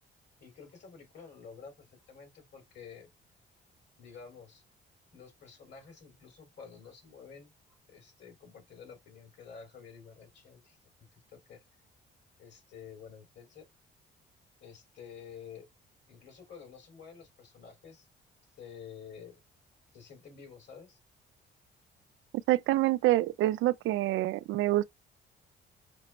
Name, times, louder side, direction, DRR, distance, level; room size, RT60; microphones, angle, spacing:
voice 1, 0.4-3.1 4.0-4.6 5.1-11.6 12.4-13.7 14.6-15.7 16.1-18.1 18.6-19.4 19.9-21.0, left 6 dB, 60° left, 2.9 m, -50 dB
voice 2, 22.5-24.8, right 16 dB, 85° right, 0.4 m, -26 dB
5.9 x 2.0 x 4.2 m
cardioid pair, 90°, 20 cm